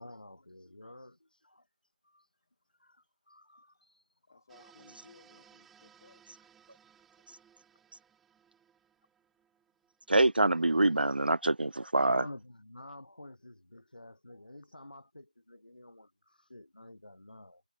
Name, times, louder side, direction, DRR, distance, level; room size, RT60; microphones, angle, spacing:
voice 1, 0.0-1.7 2.0-2.3 2.7-4.1 4.6-4.7 12.0-17.6, left 1 dB, 70° left, 5.9 m, -50 dB
voice 2, 3.5-4.0 4.3-6.2, left 4 dB, 20° left, 7.8 m, -61 dB
sound 1, 4.5-11.3, right 8 dB, ahead, 1.6 m, -63 dB
voice 3, 10.1-12.2, right 2 dB, 85° right, 0.5 m, -25 dB
figure-of-eight pair, 175°, 5 cm